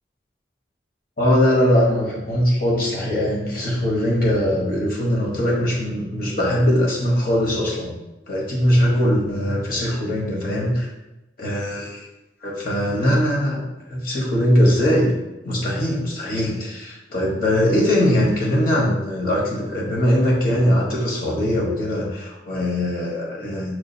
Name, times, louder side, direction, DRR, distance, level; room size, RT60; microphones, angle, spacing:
voice 1, 1.2-7.9 8.3-10.9 11.4-12.1 12.4-15.1 15.4-23.7, equal, 50° left, -3 dB, 1.1 m, -21 dB
6.1 x 2.4 x 2.6 m, 0.99 s
head